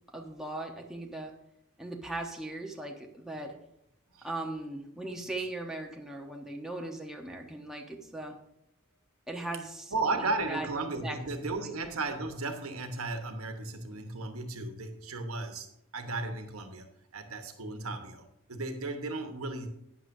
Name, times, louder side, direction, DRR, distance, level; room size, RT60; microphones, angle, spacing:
voice 1, 0.1-1.3 1.8-3.5 4.2-8.3 9.3-10.7 11.0-11.2 11.6-11.8, right 2 dB, ahead, 0 dB, 1.0 m, -39 dB
voice 2, 9.9-16.9 17.1-19.7, right 3 dB, 80° right, 5 dB, 1.2 m, -35 dB
12.0 x 9.4 x 2.7 m, 0.79 s
head